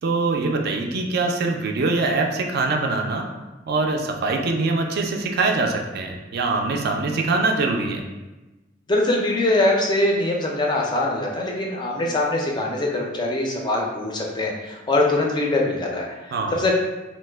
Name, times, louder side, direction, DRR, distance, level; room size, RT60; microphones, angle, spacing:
voice 1, 0.0-3.2 3.7-8.0 16.3-16.6, right 3 dB, 55° right, 3 dB, 0.3 m, -23 dB
voice 2, 8.9-16.8, left 2 dB, 25° left, -1 dB, 0.4 m, -23 dB
3.0 x 2.0 x 3.3 m, 1.1 s
head